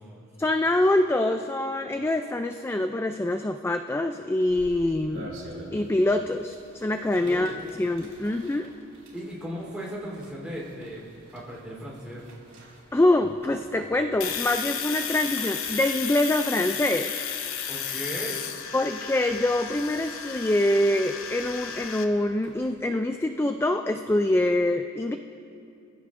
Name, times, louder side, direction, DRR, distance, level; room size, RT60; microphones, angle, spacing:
voice 1, 0.4-5.3 5.7-7.5 7.8-8.7 12.9-17.1 18.7-25.2, left 1 dB, 10° left, 7 dB, 0.3 m, -25 dB
sound 1, 4.5-22.8, right 1 dB, 80° right, 4.0 m, -50 dB
voice 2, 7.2-7.7 9.1-11.0 11.3-12.3 17.7-18.4, equal, 5° right, -5 dB, 3.6 m, -37 dB
Domestic sounds home sounds, 14.2-22.0, left 8 dB, 75° left, 0.9 m, -33 dB
24.5 x 15.5 x 2.6 m, 2.7 s
head